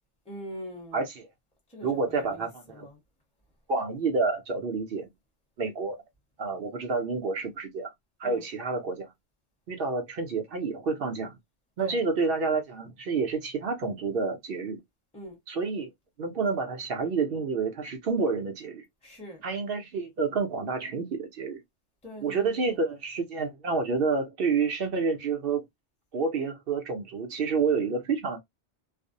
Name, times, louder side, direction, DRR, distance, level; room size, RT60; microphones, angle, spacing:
voice 1, 0.2-1.1 1.7-3.0 8.2-8.5 11.8-12.0 15.1-15.4 19.0-19.4 22.0-22.9, equal, 5° left, 0.8 m, -43 dB
voice 2, 1.8-2.9 3.7-5.1 5.6-6.0 6.4-7.9 8.2-9.1 9.7-11.4 11.8-14.8 15.5-15.9 16.2-18.8 19.4-21.6 22.2-25.7 26.1-28.4, right 4 dB, 60° right, 0.7 m, -29 dB
2.5 x 2.0 x 2.5 m
omnidirectional pair, 1.2 m